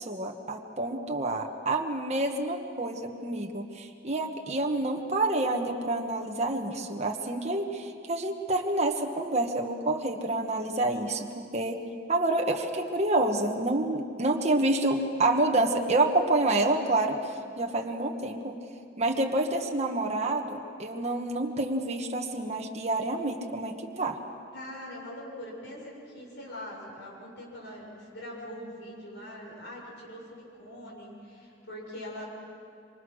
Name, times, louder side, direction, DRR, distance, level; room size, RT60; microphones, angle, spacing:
voice 1, 0.0-18.6 19.0-24.2, right 2 dB, 35° right, 2 dB, 1.4 m, -28 dB
voice 2, 24.5-32.2, left 1 dB, 65° left, -2 dB, 6.9 m, -42 dB
27.0 x 25.0 x 6.4 m, 2.5 s
head